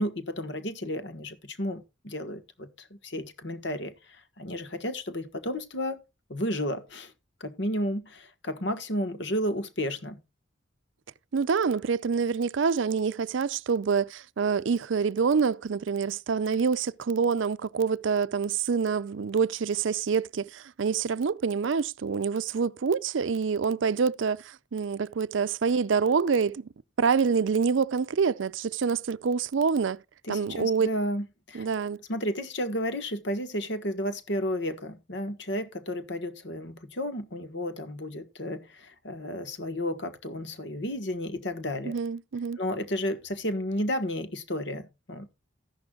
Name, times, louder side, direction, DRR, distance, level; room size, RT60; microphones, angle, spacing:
voice 1, 0.0-6.0 6.3-7.1 7.4-10.2 30.3-31.7 32.1-41.9 42.6-45.3, equal, 65° left, 1.4 m, -32 dB
voice 2, 11.3-26.7 27.0-30.0 30.3-30.9 31.5-32.0 41.8-42.6, right 5 dB, 75° right, 0.5 m, -26 dB
13.5 x 11.5 x 2.4 m
head